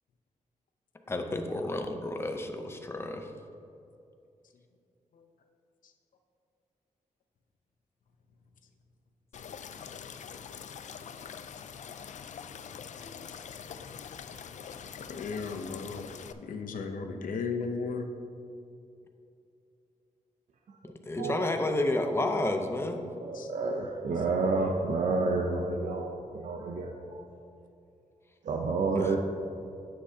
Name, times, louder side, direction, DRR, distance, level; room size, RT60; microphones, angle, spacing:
voice 1, 1.1-3.3 21.1-23.0 28.9-29.1, left 2 dB, 20° left, 5 dB, 0.6 m, -30 dB
sound 1, 9.3-16.3, left 7 dB, 65° left, 0.4 m, -44 dB
voice 2, 15.1-16.1 16.4-18.1 23.3-23.5, left 4 dB, 90° left, 5 dB, 0.7 m, -35 dB
voice 3, 21.2-21.5 23.2-27.3 28.4-29.2, right 3 dB, 65° right, 1 dB, 0.6 m, -30 dB
9.8 x 7.7 x 2.8 m, 2.6 s
wide cardioid pair, 135°, 13 cm